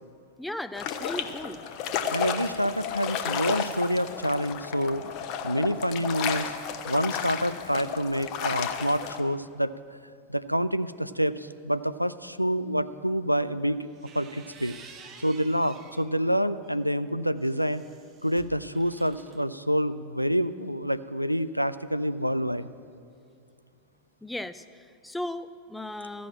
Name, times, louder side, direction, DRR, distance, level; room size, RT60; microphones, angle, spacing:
voice 1, 0.4-1.6 24.2-26.3, left 1 dB, 5° left, 12 dB, 0.4 m, -36 dB
sound 1, 0.7-9.2, left 7 dB, 40° left, 0.8 m, -32 dB
voice 2, 2.1-5.0 5.4-6.5 6.8-9.7 10.3-13.9 14.1-14.7 15.2-17.8 18.2-22.7, equal, 90° right, 13 dB, 0.3 m, -27 dB
sound 2, 13.8-16.1 16.6-19.4, right 6 dB, 30° right, 1.0 m, -51 dB
14.0 x 6.2 x 8.8 m, 2.3 s
figure-of-eight pair, 90°, 0 cm